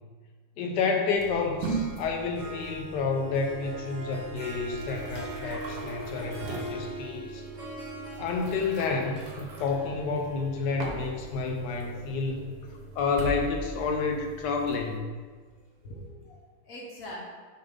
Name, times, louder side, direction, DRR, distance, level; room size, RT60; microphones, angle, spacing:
voice 1, 0.6-7.5 8.2-12.5 12.9-15.1, left 4 dB, 85° left, 3 dB, 1.3 m, -30 dB
sound 1, 1.1-15.0, right 2 dB, 70° right, 1.4 m, -40 dB
Harp, 1.6-13.0, right 2 dB, 50° right, 1.7 m, -42 dB
voice 2, 5.4-6.6 7.5-8.0 11.5-12.7 15.8-17.2, equal, 55° left, -4 dB, 1.4 m, -46 dB
6.5 x 3.3 x 5.1 m, 1.5 s
omnidirectional pair, 1.8 m